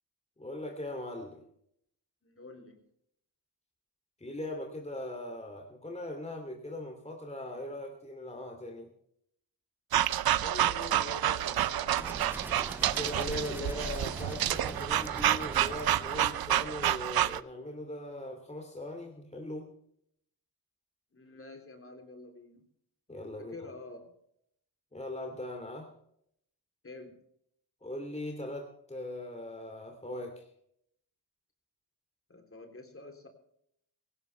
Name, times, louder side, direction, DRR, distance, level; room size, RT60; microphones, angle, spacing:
voice 1, 0.4-1.4 4.2-8.9 12.8-19.7 23.1-23.6 24.9-25.9 27.8-30.5, left 1 dB, 15° left, 3 dB, 2.8 m, -40 dB
voice 2, 2.2-2.8 10.4-12.0 21.1-22.6 23.4-24.1 26.8-27.2 32.3-33.3, left 2 dB, 30° left, 5 dB, 3.5 m, -47 dB
sound 1, 9.9-17.4, right 12 dB, 60° right, 0.7 m, -29 dB
sound 2, 12.0-16.9, right 1 dB, 5° right, 0.4 m, -43 dB
17.5 x 16.0 x 3.4 m, 0.71 s
cardioid pair, 60°, 41 cm